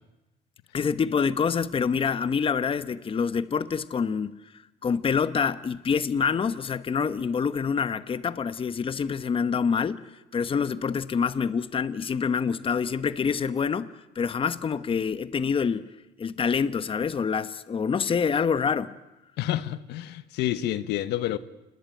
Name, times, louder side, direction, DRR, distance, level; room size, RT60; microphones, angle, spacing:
voice 1, 0.7-4.4 4.8-10.1 10.3-15.9 16.2-18.9, left 6 dB, 30° left, 1.0 m, -26 dB
voice 2, 19.4-21.4, left 13 dB, 85° left, 1.3 m, -29 dB
28.5 x 20.5 x 9.2 m
cardioid pair, 110°, 17 cm